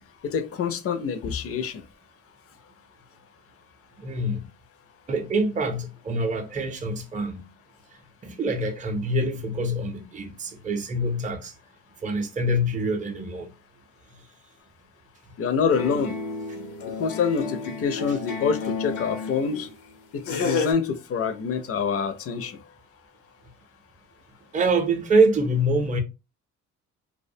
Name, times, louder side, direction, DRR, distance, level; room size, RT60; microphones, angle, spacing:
voice 1, 0.2-1.8 15.4-16.1 17.0-19.7 20.1-22.6, left 6 dB, 50° left, 0.5 m, -26 dB
voice 2, 4.0-4.5 5.1-7.5 8.2-11.5 12.0-13.5 24.5-26.0, right 1 dB, 25° right, 0.5 m, -25 dB
sound 1, 15.7-19.8 20.3-20.7, left 4 dB, 90° left, 0.7 m, -31 dB
2.3 x 2.1 x 2.6 m
cardioid pair, 90°, 30 cm